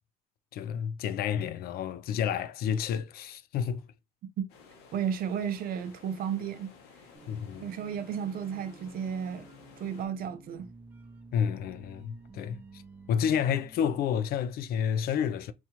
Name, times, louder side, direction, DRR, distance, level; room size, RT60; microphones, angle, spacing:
voice 1, 0.5-3.8 7.3-7.7 11.3-12.6 13.1-15.5, left 8 dB, 65° left, 0.4 m, -30 dB
sound 1, 4.5-10.1, left 5 dB, 90° left, 0.9 m, -54 dB
voice 2, 4.9-6.7 7.6-9.5 9.8-10.7, right 8 dB, 60° right, 0.6 m, -33 dB
sound 2, 7.1-14.0, right 2 dB, 10° right, 0.7 m, -52 dB
4.3 x 2.4 x 2.8 m
cardioid pair, 110°, 17 cm